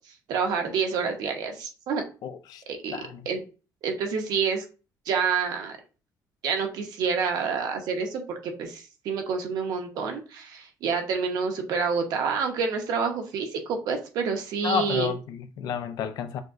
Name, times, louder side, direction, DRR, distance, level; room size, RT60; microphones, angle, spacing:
voice 1, 0.3-2.0 2.7-3.0 3.3-3.4 3.8-4.6 5.1-5.7 6.4-15.1, right 5 dB, 70° right, 0.9 m, -28 dB
voice 2, 2.2-2.6 2.9-3.3 14.6-16.4, left 7 dB, 65° left, 0.5 m, -31 dB
6.3 x 2.2 x 2.5 m
cardioid pair, 170°, 7 cm